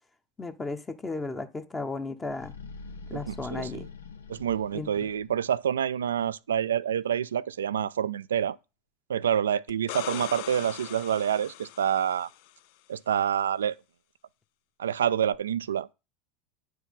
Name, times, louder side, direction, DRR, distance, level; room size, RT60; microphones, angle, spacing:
voice 1, 0.4-2.5 3.1-3.8 4.7-4.9, left 3 dB, 20° left, 1.1 m, -34 dB
sound 1, 2.2-5.5, left 4 dB, 90° left, 0.8 m, -44 dB
voice 2, 3.1-3.9 4.3-8.6 9.1-12.3 12.9-13.8 14.8-15.9, right 9 dB, 85° right, 0.3 m, -27 dB
sound 2, 9.7-12.5 15.3-15.4, left 15 dB, 65° left, 0.4 m, -40 dB
9.1 x 4.8 x 5.3 m
hypercardioid pair, 90°, 0 cm